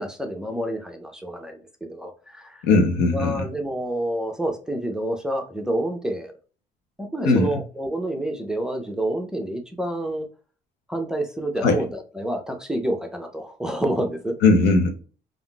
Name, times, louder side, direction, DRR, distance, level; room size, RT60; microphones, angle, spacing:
voice 1, 0.0-2.7 3.1-6.3 7.0-10.3 10.9-14.4, right 1 dB, 5° right, 0.5 m, -28 dB
voice 2, 2.6-3.4 7.2-7.5 11.6-11.8 14.4-14.9, left 3 dB, 80° left, 0.7 m, -18 dB
3.5 x 2.5 x 2.3 m
cardioid pair, 110°, 17 cm